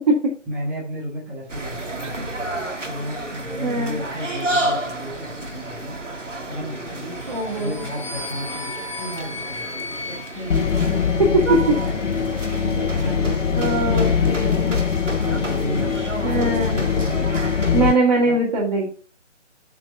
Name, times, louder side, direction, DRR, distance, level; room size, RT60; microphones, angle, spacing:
voice 1, 0.5-2.3 2.8-5.9 6.4-7.2 7.6-9.6 10.0-17.7 18.2-18.4, equal, 5° right, -3 dB, 1.4 m, -33 dB
sound 1, 1.5-18.0, right 2 dB, 85° right, 2.2 m, -31 dB
voice 2, 3.6-4.0 7.3-7.8 11.5-11.6 13.5-14.7 16.2-16.8 17.7-18.9, right 2 dB, 30° right, -3 dB, 2.7 m, -21 dB
sound 2, 7.2-11.5, left 3 dB, 25° left, 1.0 m, -36 dB
sound 3, 10.5-17.9, left 7 dB, 80° left, 0.6 m, -22 dB
7.6 x 6.0 x 5.5 m, 0.39 s
figure-of-eight pair, 155°, 36 cm